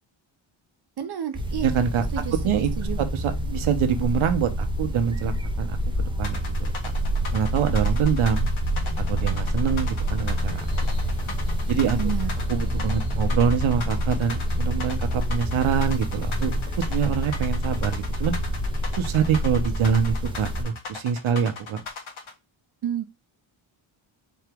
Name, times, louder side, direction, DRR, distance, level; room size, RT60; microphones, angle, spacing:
voice 1, 1.0-1.8 2.1-3.0 12.0-12.3 22.8-23.1, right 10 dB, 50° right, 8 dB, 0.6 m, -30 dB
sound 1, 1.3-20.6, equal, 10° right, 0.6 m, -27 dB
voice 2, 1.6-2.0 2.4-2.7 3.0-5.3 5.6-6.7 7.3-8.5 9.1-10.7 11.7-12.1 12.5-18.4 19.0-21.8, right 7 dB, 75° right, 7 dB, 1.0 m, -25 dB
sound 2, 6.2-22.3, left 4 dB, 70° left, 1.5 m, -37 dB
sound 3, 8.7-14.9, left 1 dB, 90° left, 1.9 m, -39 dB
4.4 x 2.9 x 3.5 m, 0.23 s
wide cardioid pair, 145°, 49 cm